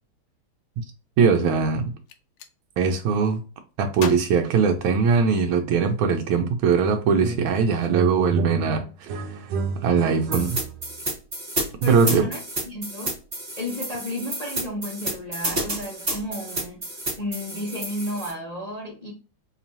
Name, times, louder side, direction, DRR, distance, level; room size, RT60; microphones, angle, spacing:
voice 1, 1.2-1.9 2.8-3.4 3.8-9.5 9.8-10.6 11.8-12.3, right 5 dB, 90° right, 1.4 m, -21 dB
Gunshot gunfire, 1.9-2.5 3.9-5.4, left 7 dB, 80° left, 1.3 m, -38 dB
sound 1, 7.2-7.6 7.8-11.0, right 3 dB, 70° right, 1.2 m, -30 dB
sound 2, 10.3-18.3, right 1 dB, 20° right, 1.6 m, -30 dB
voice 2, 11.8-12.4 12.7-13.1 13.6-16.9 17.2-19.1, left 1 dB, 45° left, 0.5 m, -32 dB
4.3 x 3.0 x 2.6 m
omnidirectional pair, 2.2 m